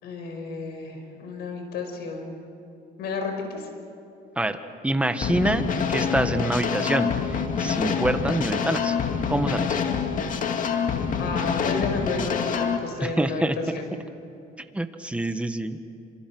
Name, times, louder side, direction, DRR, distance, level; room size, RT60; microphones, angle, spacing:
voice 1, 0.0-2.4 3.0-3.7 11.2-13.9, left 4 dB, 75° left, 4 dB, 5.7 m, -31 dB
voice 2, 4.4-9.0 9.3-9.8 13.0-13.6 14.7-15.8, right 1 dB, 5° right, 8 dB, 1.6 m, -26 dB
sound 1, 5.2-12.8, left 6 dB, 50° left, 2.2 m, -26 dB
27.5 x 26.5 x 6.2 m, 2.7 s
cardioid pair, 110°, 17 cm